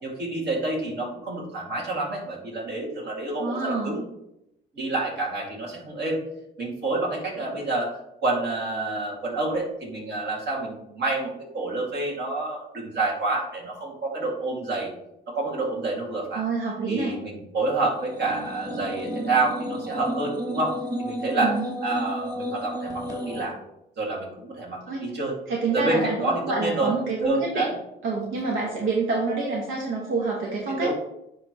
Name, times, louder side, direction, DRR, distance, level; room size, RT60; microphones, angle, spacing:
voice 1, 0.0-4.0 4.7-6.2 6.6-7.9 8.2-14.9 15.3-16.4 16.9-20.7 21.0-21.5 21.8-23.5 24.0-25.4 25.7-26.9 27.2-27.8 30.7-30.9, right 2 dB, 60° right, -2 dB, 2.4 m, -28 dB
voice 2, 3.4-4.0 16.3-17.2 21.4-21.7 24.9-25.0 25.5-27.7 28.0-30.9, right 3 dB, 85° right, -2 dB, 1.1 m, -27 dB
sound 1, 17.9-23.4, equal, 20° right, 2.0 m, -32 dB
9.8 x 3.4 x 3.1 m, 0.83 s
cardioid pair, 90°, 20 cm